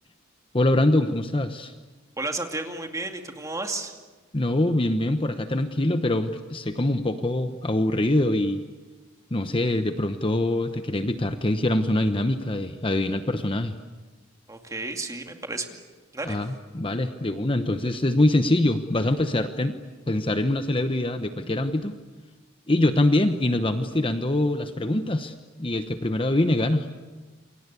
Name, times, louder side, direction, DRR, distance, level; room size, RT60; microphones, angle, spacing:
voice 1, 0.5-1.7 4.3-8.6 9.3-13.7 16.2-19.7 20.1-21.9 22.7-25.3 25.6-26.9, left 1 dB, 25° left, 9 dB, 1.0 m, -24 dB
voice 2, 2.2-4.0 14.5-15.8 16.1-16.4, right 2 dB, 15° right, 4 dB, 2.4 m, -32 dB
28.5 x 24.5 x 8.5 m, 1.2 s
head